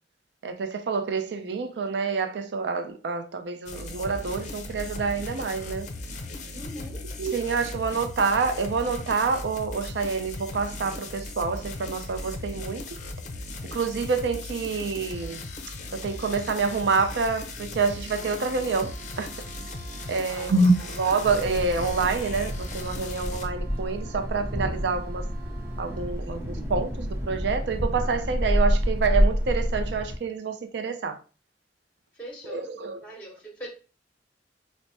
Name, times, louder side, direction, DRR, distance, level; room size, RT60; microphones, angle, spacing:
voice 1, 0.4-5.9 7.2-12.8 13.7-15.4 15.9-19.3 20.1-25.3 25.8-31.2 32.5-33.0, right 4 dB, 75° right, 0.4 m, -27 dB
sound 1, 3.7-23.5, left 2 dB, 45° left, 0.5 m, -38 dB
voice 2, 6.5-7.0 20.3-20.9 32.1-32.7 33.0-33.7, equal, 10° left, 0.9 m, -42 dB
Wind instrument woodwind instrument, 18.0-26.2, right 6 dB, 40° right, 1.0 m, -50 dB
Thunder, 21.2-30.2, equal, 15° right, 0.6 m, -28 dB
4.4 x 2.1 x 2.7 m
head